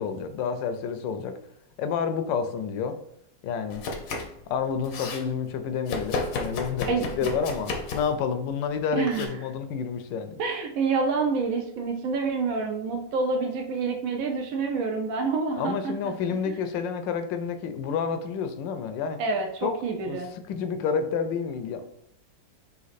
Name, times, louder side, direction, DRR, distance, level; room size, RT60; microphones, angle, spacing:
voice 1, 0.0-1.4 1.8-3.0 3.4-3.8 4.5-10.3 15.6-19.2 19.6-19.7 20.0-20.2 20.5-21.8, left 6 dB, 80° left, 9 dB, 1.2 m, -29 dB
Domestic sounds home sounds, 3.7-4.4 4.7-5.2 5.9-8.2 9.1-9.3, left 3 dB, 65° left, 0.9 m, -32 dB
voice 2, 8.9-9.4 10.4-16.1 16.5-16.6 19.2-20.3, right 4 dB, 75° right, 3 dB, 0.8 m, -27 dB
4.1 x 2.8 x 4.0 m, 0.72 s
omnidirectional pair, 2.0 m